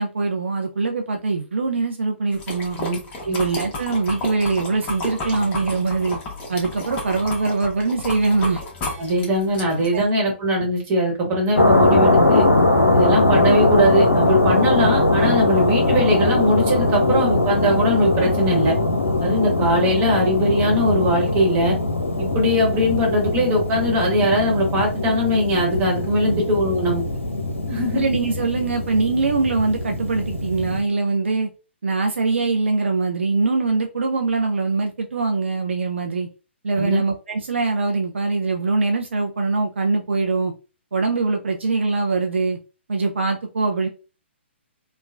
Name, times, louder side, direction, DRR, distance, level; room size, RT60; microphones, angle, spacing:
voice 1, 0.0-2.8 3.2-6.2 6.5-8.6 9.9-10.1 11.5-11.7 26.2-26.4 27.9-31.5 31.8-36.3 36.6-40.5 40.9-42.6 42.9-43.9, right 3 dB, 70° right, 0.4 m, -22 dB
sound 1, 2.3-10.0, left 2 dB, 20° left, 0.8 m, -32 dB
voice 2, 9.0-12.5 12.9-18.7 19.2-21.8 22.2-27.0 27.7-28.0 36.8-37.0, equal, 25° right, 1.1 m, -20 dB
sound 2, 11.6-30.8, left 2 dB, 85° left, 0.6 m, -21 dB
3.1 x 2.1 x 2.3 m
figure-of-eight pair, 125°, 7 cm